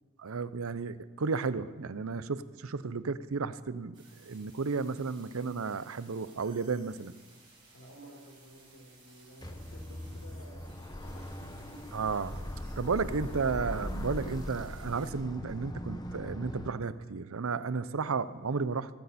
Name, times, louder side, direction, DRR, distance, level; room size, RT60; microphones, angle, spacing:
voice 1, 0.2-3.9 4.2-7.1 11.9-12.4 12.8-18.9, right 4 dB, 75° right, 15 dB, 0.6 m, -33 dB
sound 1, 3.9-15.1, right 3 dB, 25° right, 5.2 m, -59 dB
voice 2, 7.7-12.3 13.0-13.5, right 1 dB, 85° left, 1 dB, 4.4 m, -53 dB
sound 2, 9.4-16.7, left 1 dB, 20° left, 0.8 m, -40 dB
17.0 x 15.5 x 4.2 m, 1.3 s
head